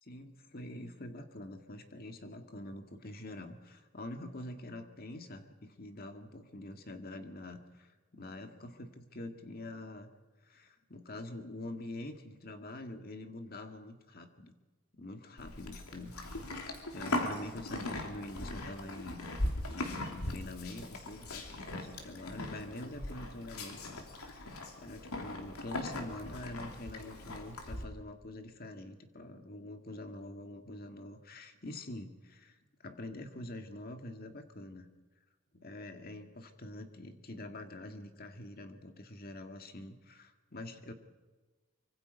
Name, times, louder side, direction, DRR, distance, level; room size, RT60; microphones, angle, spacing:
voice 1, 0.0-10.1 10.4-14.5 14.9-16.1 16.5-19.4 19.7-34.9 35.5-40.9, left 1 dB, 40° left, 6 dB, 1.9 m, -45 dB
Livestock farm animals working animals, 15.4-27.8, left 1 dB, 85° left, 3.1 m, -39 dB
24.5 x 24.5 x 5.3 m, 1.2 s
head